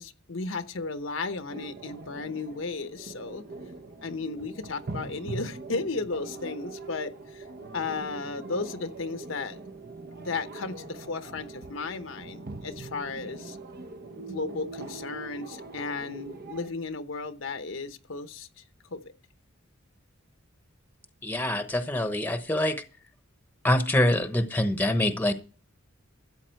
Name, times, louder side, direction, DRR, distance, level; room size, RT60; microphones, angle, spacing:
voice 1, 0.0-3.4 4.0-7.4 7.7-9.6 10.2-13.6 14.3-19.0, left 4 dB, 70° left, 0.9 m, -34 dB
sound 1, 1.5-16.7, right 3 dB, 50° right, 0.9 m, -42 dB
voice 2, 21.2-22.8 23.6-25.3, left 1 dB, 10° left, 1.0 m, -25 dB
14.0 x 8.4 x 4.5 m
head